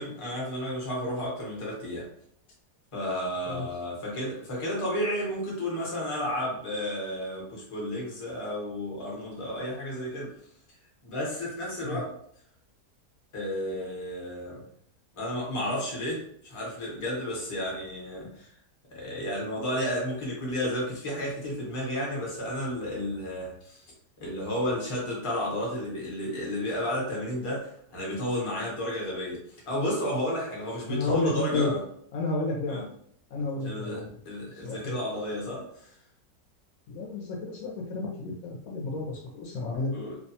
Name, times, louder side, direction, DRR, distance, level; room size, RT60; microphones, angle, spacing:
voice 1, 0.0-2.1 2.9-10.3 11.0-12.1 13.3-14.6 15.1-18.5 18.9-23.8 24.2-31.8 32.7-32.8 33.6-35.9 39.9-40.2, equal, 30° left, -4 dB, 0.6 m, -32 dB
voice 2, 30.9-31.7 32.1-32.9 33.3-34.1 34.6-35.0 36.9-39.9, left 3 dB, 70° left, -2 dB, 0.9 m, -31 dB
2.7 x 2.2 x 2.7 m, 0.67 s
omnidirectional pair, 1.7 m